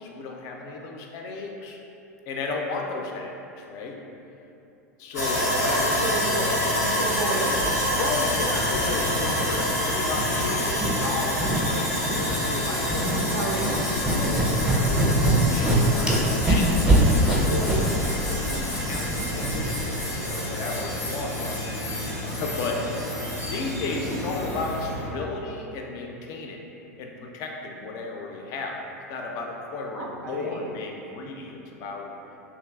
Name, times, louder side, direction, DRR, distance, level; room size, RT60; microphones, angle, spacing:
voice 1, 0.0-1.8 2.3-4.0 5.0-6.0 7.9-21.9 22.2-22.8 23.5-26.6 27.0-28.8 29.1-32.1, left 3 dB, 45° left, 1 dB, 0.3 m, -34 dB
Sawing, 5.1-25.1, left 1 dB, 90° left, 0.6 m, -28 dB
voice 2, 5.7-7.6 13.3-13.9 30.0-30.7, right 2 dB, 80° right, -1 dB, 0.4 m, -32 dB
sound 1, 7.6-7.7 8.3-9.8 10.1-10.9 11.4-11.6 12.0-12.4 12.7-13.2 13.5-19.7, right 1 dB, 10° right, 0.5 m, -25 dB
2.7 x 2.4 x 2.2 m, 2.8 s
figure-of-eight pair, 85°, 8 cm